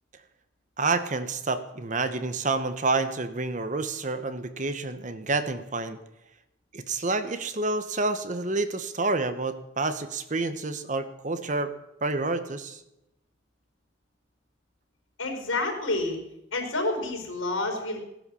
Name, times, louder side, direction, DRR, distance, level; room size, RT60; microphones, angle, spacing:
voice 1, 0.8-6.0 6.7-11.7 12.0-12.8, right 3 dB, 35° right, 11 dB, 1.0 m, -28 dB
voice 2, 15.2-16.2 16.5-18.0, left 2 dB, 85° left, 3 dB, 4.9 m, -29 dB
17.5 x 10.5 x 7.0 m, 0.87 s
head